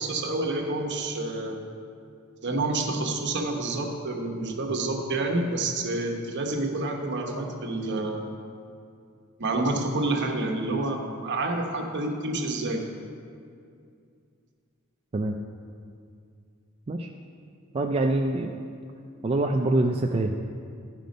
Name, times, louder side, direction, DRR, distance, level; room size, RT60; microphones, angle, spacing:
voice 1, 0.0-1.7 2.4-8.3 9.4-12.9, right 2 dB, 55° right, 2 dB, 1.0 m, -28 dB
voice 2, 17.7-18.5 19.2-20.4, right 2 dB, 25° right, 3 dB, 0.4 m, -25 dB
13.0 x 5.1 x 5.2 m, 2.3 s
head